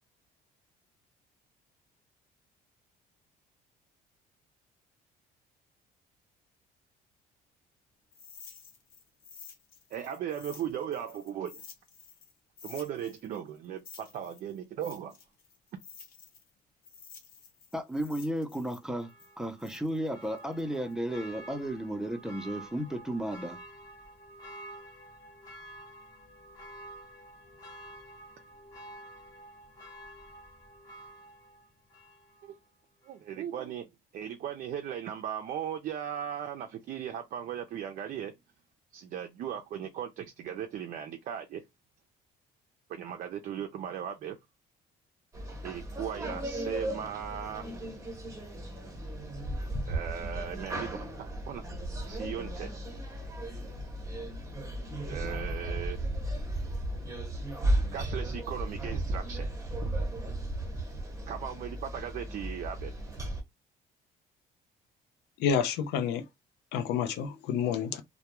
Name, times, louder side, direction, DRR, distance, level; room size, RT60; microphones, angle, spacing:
sound 1, 8.1-12.3 12.6-16.5 16.8-20.9, left 6 dB, 55° left, 0.9 m, -51 dB
voice 1, 9.9-11.6 12.6-15.1 32.4-32.6 33.0-33.9 34.1-38.3 38.9-41.6 42.9-44.4 45.6-47.7 49.9-51.6 52.1-52.7 55.1-56.0 57.9-59.5 61.3-62.9, right 9 dB, 55° right, 0.4 m, -37 dB
voice 2, 17.7-19.1 19.4-23.6, right 1 dB, 5° right, 0.5 m, -33 dB
Church bell, 19.0-32.6 33.0-33.1, right 1 dB, 25° left, 0.8 m, -50 dB
sound 2, 45.3-63.4, right 1 dB, 20° right, 0.9 m, -35 dB
voice 3, 65.4-66.3 66.7-68.0, left 7 dB, 85° left, 0.5 m, -29 dB
2.2 x 2.1 x 2.9 m
cardioid pair, 110°, 17 cm